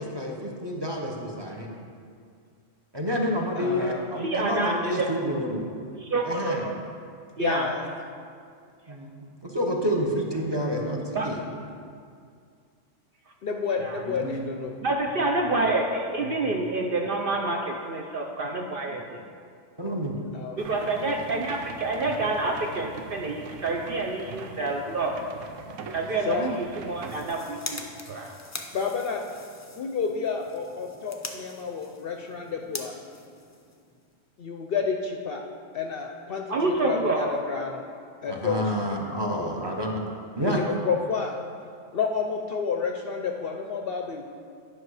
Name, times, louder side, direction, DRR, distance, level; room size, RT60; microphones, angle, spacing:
voice 1, 0.0-1.7 2.9-5.6 6.2-6.7 8.9-11.4 14.1-14.5 19.8-20.1 38.3-40.0 40.4-40.6, equal, 25° right, -1 dB, 0.8 m, -29 dB
voice 2, 3.5-4.1 7.4-7.9 10.8-10.9 13.4-14.7 20.3-20.6 26.2-26.5 28.7-29.2 29.7-33.0 34.4-35.4 35.7-37.8 38.2-38.7 40.4-41.4 41.9-44.2, left 5 dB, 60° left, 3 dB, 0.7 m, -30 dB
voice 3, 4.2-5.1 6.0-6.8 7.4-7.7 11.1-11.3 13.8-14.0 14.8-19.2 20.6-25.1 25.9-28.3 36.5-37.4, right 2 dB, 55° right, 1 dB, 0.7 m, -28 dB
sound 1, 20.6-27.3, right 5 dB, 80° right, 1.1 m, -41 dB
sound 2, 26.9-34.2, left 2 dB, 25° left, 0.3 m, -43 dB
10.5 x 5.8 x 4.8 m, 2.2 s
omnidirectional pair, 1.3 m